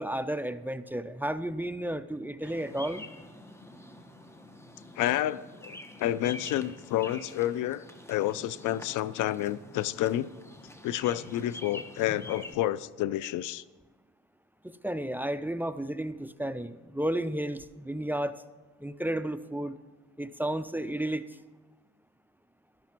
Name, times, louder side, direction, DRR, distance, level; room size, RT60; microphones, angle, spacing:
voice 1, 0.0-3.0 14.6-18.3 18.8-19.8 20.2-21.4, right 1 dB, 5° right, 12 dB, 0.4 m, -32 dB
Bird vocalization bird call bird song, 2.4-12.5, left 1 dB, 10° left, 1.1 m, -46 dB
voice 2, 5.0-10.3 10.8-13.6, left 13 dB, 85° left, 18 dB, 0.5 m, -30 dB
12.0 x 11.5 x 4.5 m, 1.2 s
cardioid pair, 90°, 30 cm